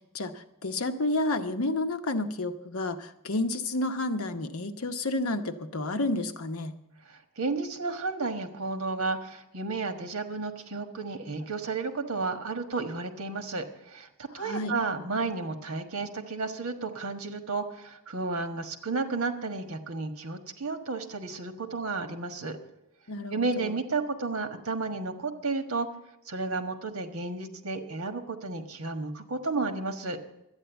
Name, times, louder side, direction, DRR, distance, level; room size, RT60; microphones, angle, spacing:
voice 1, 0.0-6.7 14.4-14.7 23.1-23.7, left 2 dB, 70° left, 8 dB, 0.9 m, -30 dB
voice 2, 7.4-22.6 23.3-25.9 26.3-30.2, right 3 dB, 70° right, 7 dB, 1.4 m, -32 dB
12.0 x 9.1 x 8.1 m, 0.88 s
head